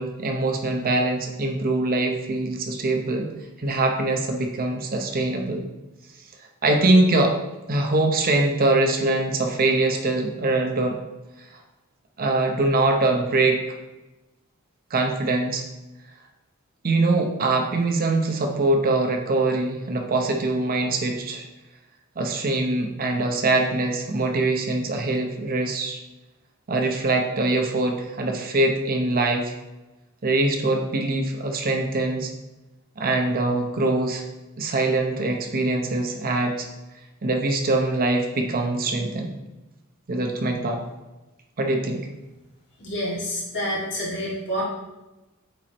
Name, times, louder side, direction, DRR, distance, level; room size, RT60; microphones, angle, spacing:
voice 1, 0.0-3.3 3.6-5.6 6.6-7.4 7.7-11.0 12.2-13.6 14.9-15.6 16.8-21.5 22.2-26.0 26.7-29.5 30.2-32.3 33.0-34.2 34.6-36.7 37.2-39.3 40.1-40.8 41.6-42.1, right 2 dB, 40° right, 3 dB, 0.7 m, -23 dB
voice 2, 42.8-44.6, equal, 55° left, -6 dB, 2.3 m, -28 dB
8.5 x 4.6 x 3.0 m, 1.0 s
head